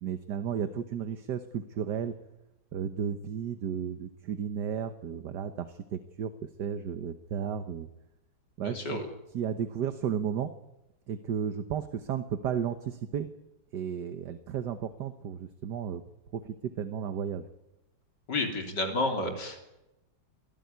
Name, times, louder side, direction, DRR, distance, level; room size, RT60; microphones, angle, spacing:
voice 1, 0.0-2.1 2.7-6.3 6.6-7.9 8.6-9.0 9.3-10.5 11.1-13.3 13.7-16.0 16.3-17.5, right 8 dB, 70° right, 10 dB, 1.7 m, -33 dB
voice 2, 8.6-9.0 18.3-19.6, left 2 dB, 70° left, 4 dB, 4.1 m, -30 dB
28.0 x 17.0 x 9.5 m, 0.95 s
omnidirectional pair, 1.9 m